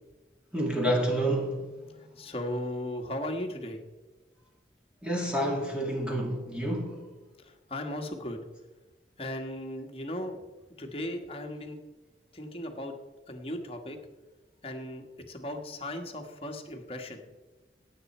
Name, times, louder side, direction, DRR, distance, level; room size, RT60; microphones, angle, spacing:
voice 1, 0.5-1.8 5.0-7.1, right 1 dB, 5° right, -1 dB, 2.3 m, -29 dB
voice 2, 2.2-3.8 7.4-8.4 9.2-10.4 10.8-11.8 12.3-12.9 13.3-14.0 14.6-17.2, left 1 dB, 30° left, 3 dB, 1.5 m, -36 dB
17.5 x 7.9 x 4.4 m, 1.1 s
head